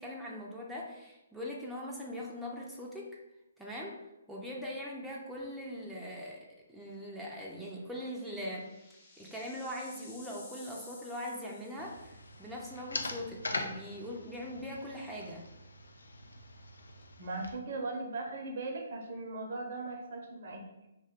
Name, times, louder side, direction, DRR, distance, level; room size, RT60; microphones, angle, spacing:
voice 1, 0.0-3.2 3.6-4.0 4.3-8.7 9.2-15.4, left 1 dB, ahead, -5 dB, 0.4 m, -41 dB
sound 1, 5.4-5.7 6.1-6.2 7.6-12.3, left 3 dB, 35° left, 0.9 m, -55 dB
sound 2, 11.8-17.5, left 2 dB, 80° left, 0.3 m, -42 dB
voice 2, 17.2-20.6, right 2 dB, 55° right, 2 dB, 0.6 m, -38 dB
2.5 x 2.2 x 3.5 m, 0.95 s
figure-of-eight pair, 135°, 0 cm